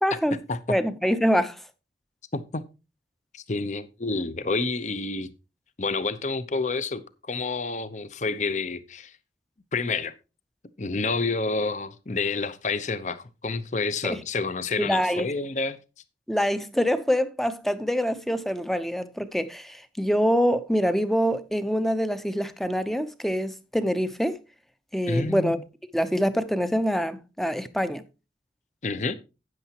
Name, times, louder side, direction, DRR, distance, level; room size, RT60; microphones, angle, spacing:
voice 1, 0.0-0.4 0.7-1.6 14.0-14.2 14.8-15.3 16.3-24.4 24.9-25.6 25.9-28.0, equal, ahead, 0.6 m, -25 dB
voice 2, 2.3-2.6 3.3-5.3 5.8-9.1 9.7-10.1 10.8-15.8 25.1-25.6 28.8-29.1, left 3 dB, 40° left, 0.7 m, -29 dB
12.5 x 9.1 x 2.9 m
head